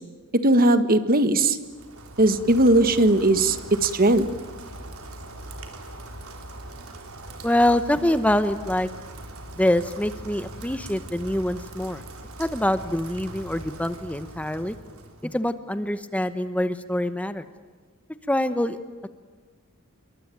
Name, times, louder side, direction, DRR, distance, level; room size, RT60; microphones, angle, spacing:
voice 1, 0.4-1.6 2.2-3.6 3.8-4.2, right 1 dB, 45° right, 11 dB, 1.6 m, -18 dB
Rain, 1.6-15.4, right 1 dB, 85° right, 3.8 m, -41 dB
voice 2, 7.4-8.9 9.6-12.0 12.4-14.8 15.2-17.4 18.3-19.1, left 1 dB, 5° left, 11 dB, 0.9 m, -25 dB
28.0 x 22.5 x 9.2 m, 1.5 s
head